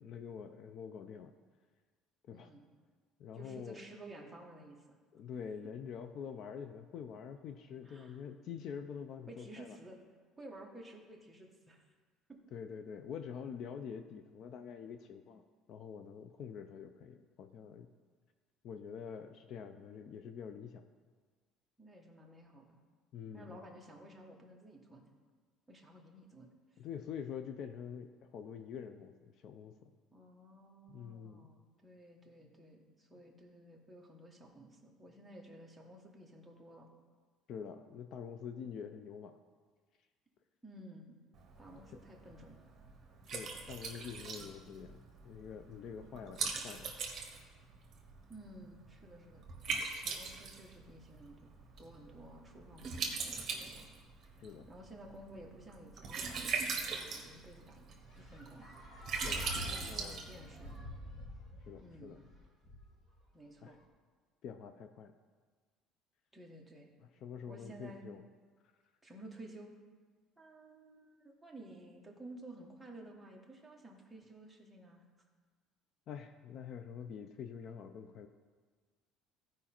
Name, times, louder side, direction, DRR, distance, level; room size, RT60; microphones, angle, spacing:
voice 1, 0.0-1.3 2.3-2.5 3.2-3.8 5.1-9.8 12.5-17.9 18.6-20.8 23.1-23.6 26.8-29.9 30.9-31.5 37.5-39.4 41.7-41.8 43.3-45.0 45.2-46.9 54.4-54.7 59.2-60.3 61.6-62.2 63.6-63.7 64.4-65.1 67.0-68.2 76.1-78.3, left 7 dB, 50° left, 8 dB, 0.4 m, -46 dB
voice 2, 2.3-2.6 3.3-4.8 7.8-8.2 9.3-10.0 10.4-11.9 12.3-12.4 21.8-22.8 23.3-25.1 25.7-26.8 30.1-36.9 40.6-41.2 41.6-42.6 46.0-46.1 48.3-49.4 50.0-51.4 51.8-53.9 54.3-54.4 54.7-58.7 59.4-60.7 61.8-62.2 63.3-63.8 66.3-66.9 67.5-68.0 69.0-69.7 70.4-75.0, right 1 dB, 5° right, -1 dB, 1.2 m, -53 dB
Liquid, 41.3-60.8, right 5 dB, 35° right, 1.4 m, -42 dB
sound 1, 58.1-63.2, left 1 dB, 25° left, 1.4 m, -46 dB
15.0 x 5.0 x 4.3 m, 1.5 s
cardioid pair, 155°, 0 cm